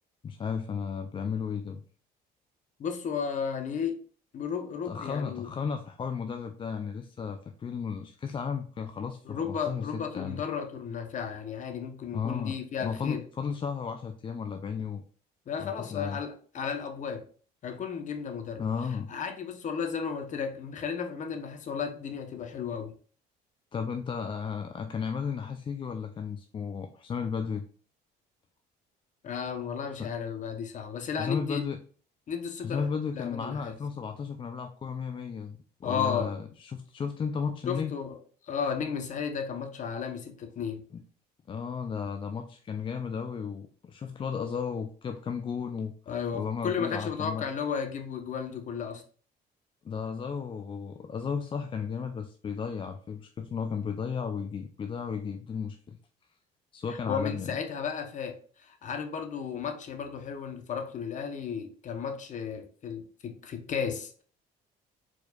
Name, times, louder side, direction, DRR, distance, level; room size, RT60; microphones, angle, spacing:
voice 1, 0.2-1.8 4.8-10.4 12.1-15.0 15.6-16.2 18.6-19.1 23.7-27.7 30.0-30.1 31.2-31.8 32.6-37.9 40.9-41.0 41.5-45.9 46.3-47.5 49.8-56.0 56.7-57.6, left 6 dB, 30° left, 0.4 m, -34 dB
voice 2, 2.8-4.0 4.3-5.5 9.3-13.2 15.5-17.2 17.6-18.6 19.1-22.9 29.2-31.6 32.3-32.9 33.1-33.7 35.8-36.3 37.7-38.2 38.5-40.8 46.1-49.0 57.1-64.2, left 7 dB, 45° left, 0.9 m, -34 dB
4.5 x 4.4 x 2.3 m
cardioid pair, 110°, 17 cm